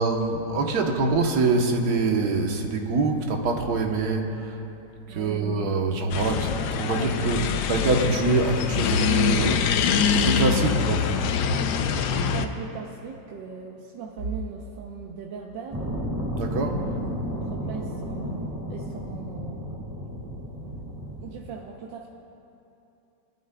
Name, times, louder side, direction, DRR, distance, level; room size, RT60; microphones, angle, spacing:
voice 1, 0.0-4.6 5.1-11.1 16.4-16.9, right 3 dB, 60° right, 2 dB, 1.5 m, -25 dB
voice 2, 5.1-5.5 10.6-11.0 12.2-16.0 17.3-19.7 21.2-22.1, right 5 dB, 80° right, -1 dB, 1.5 m, -39 dB
sound 1, 6.1-12.5, left 6 dB, 85° left, 1.3 m, -24 dB
sound 2, 15.7-21.3, equal, 10° right, 1.7 m, -32 dB
21.5 x 12.5 x 2.3 m, 2.8 s
omnidirectional pair, 2.0 m